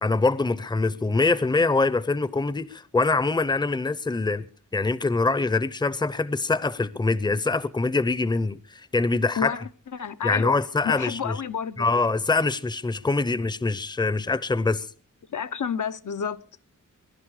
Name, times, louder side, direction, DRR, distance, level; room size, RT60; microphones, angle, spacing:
voice 1, 0.0-9.5 10.2-11.4 11.8-14.9, left 3 dB, 15° left, 0.7 m, -24 dB
voice 2, 9.9-10.6 10.8-11.9 15.3-16.4, left 7 dB, 65° left, 0.7 m, -30 dB
22.5 x 11.5 x 4.8 m
wide cardioid pair, 90°, 33 cm